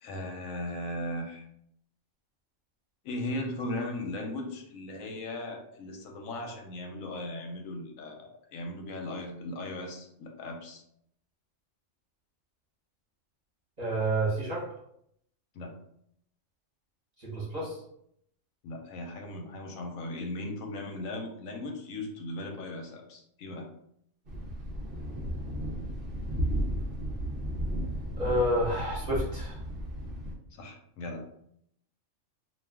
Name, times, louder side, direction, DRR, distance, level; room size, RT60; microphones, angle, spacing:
voice 1, 0.0-1.4 3.0-10.8 15.5-15.7 18.6-23.7 30.5-31.3, left 1 dB, 80° left, 2 dB, 1.0 m, -37 dB
voice 2, 13.8-14.7 17.2-17.8 28.2-29.6, right 1 dB, 35° right, -6 dB, 1.0 m, -29 dB
Thunder, 24.3-30.4, equal, 55° right, 0.7 m, -34 dB
2.4 x 2.3 x 3.4 m, 0.72 s
omnidirectional pair, 1.4 m